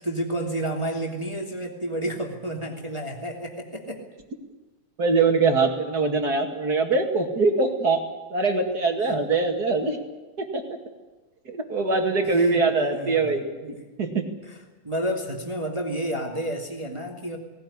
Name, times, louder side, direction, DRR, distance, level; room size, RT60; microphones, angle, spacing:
voice 1, 0.0-4.0 9.1-9.2 12.2-13.3 13.6-13.8 14.8-17.4, right 1 dB, 10° right, 2 dB, 2.4 m, -30 dB
voice 2, 5.0-8.0 8.3-10.0 10.4-10.6 11.4-14.3, right 3 dB, 35° right, 5 dB, 2.4 m, -23 dB
19.0 x 18.5 x 10.0 m, 1.2 s
omnidirectional pair, 3.3 m